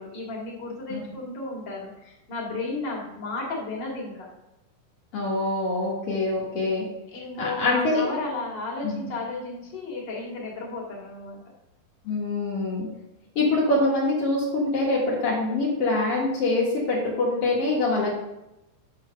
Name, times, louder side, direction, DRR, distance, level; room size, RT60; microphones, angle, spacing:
voice 1, 0.0-4.3 7.1-11.4, left 3 dB, 35° left, -3 dB, 2.0 m, -33 dB
voice 2, 5.1-6.8 7.4-8.0 8.8-9.0 12.0-12.9 13.3-18.1, left 2 dB, 75° left, -5 dB, 1.3 m, -24 dB
8.6 x 4.1 x 6.5 m, 0.90 s
omnidirectional pair, 5.2 m